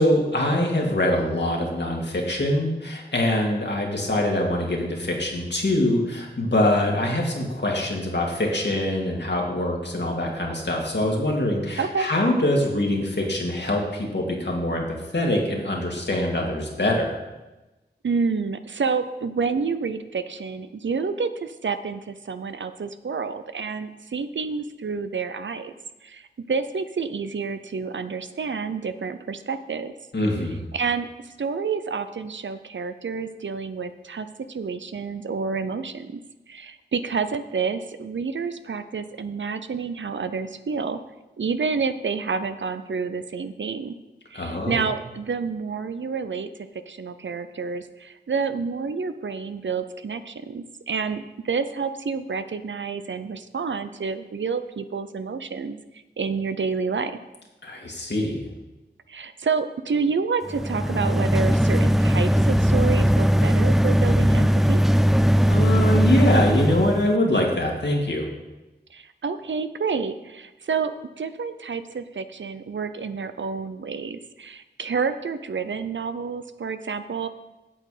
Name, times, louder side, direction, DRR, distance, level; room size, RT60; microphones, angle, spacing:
voice 1, 0.0-17.2 30.1-30.6 44.3-44.9 57.6-58.4 65.4-68.3, left 1 dB, 65° left, -1 dB, 2.1 m, -24 dB
voice 2, 11.8-12.1 18.0-25.7 26.0-29.9 30.7-36.2 36.5-41.0 41.4-44.0 44.3-46.5 46.9-57.2 59.1-64.8 68.9-70.9 71.2-77.3, right 5 dB, 85° right, 10 dB, 0.6 m, -29 dB
sound 1, 60.5-67.1, equal, ahead, 0.4 m, -19 dB
8.5 x 7.8 x 4.9 m, 1.1 s
wide cardioid pair, 40°, 19 cm